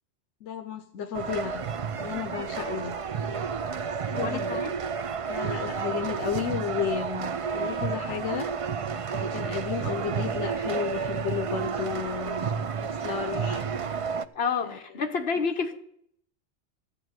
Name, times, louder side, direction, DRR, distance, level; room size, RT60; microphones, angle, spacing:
voice 1, 0.4-1.6 2.0-3.0 4.0-4.6 5.3-8.5 9.1-13.6 14.6-14.8, left 8 dB, 80° left, 1.1 m, -33 dB
sound 1, 1.1-14.2, right 6 dB, 55° right, 0.4 m, -31 dB
voice 2, 4.2-4.7 14.3-15.8, left 5 dB, 60° left, 1.4 m, -29 dB
14.5 x 5.1 x 9.2 m
omnidirectional pair, 1.2 m